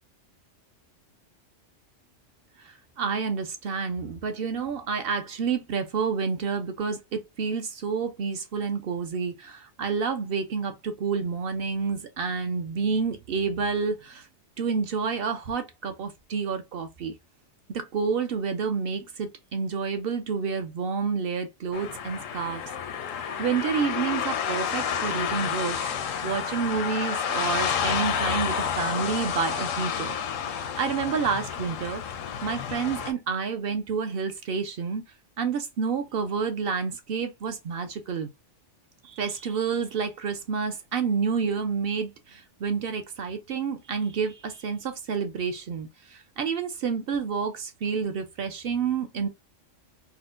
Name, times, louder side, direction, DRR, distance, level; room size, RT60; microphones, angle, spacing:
voice 1, 2.6-14.3 14.6-17.1 17.7-22.6 23.4-25.8 26.2-30.2 30.5-32.0 32.4-35.0 35.4-38.3 39.0-49.3, right 5 dB, 60° right, 0.6 m, -29 dB
Cars shoosing, 21.7-33.1, left 8 dB, 90° left, 1.0 m, -30 dB
4.2 x 2.1 x 2.4 m
omnidirectional pair, 1.3 m